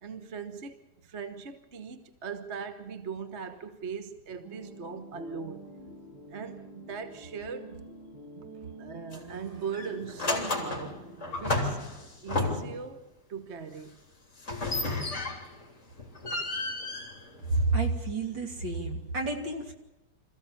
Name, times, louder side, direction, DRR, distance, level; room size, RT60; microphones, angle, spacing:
voice 1, 0.0-5.6 6.3-7.9 8.3-8.5 8.8-11.0 11.3-11.8 12.2-13.0 13.3-14.0, right 6 dB, 40° right, 1.3 m, -39 dB
sound 1, 4.4-11.6, right 2 dB, 20° right, 8.1 m, -47 dB
sound 2, 9.1-9.4 9.7-12.9 14.4-15.6 16.0-17.9, left 2 dB, 35° left, 3.6 m, -32 dB
voice 2, 17.5-19.7, right 2 dB, 60° right, 3.5 m, -29 dB
26.5 x 15.0 x 7.1 m
omnidirectional pair, 2.3 m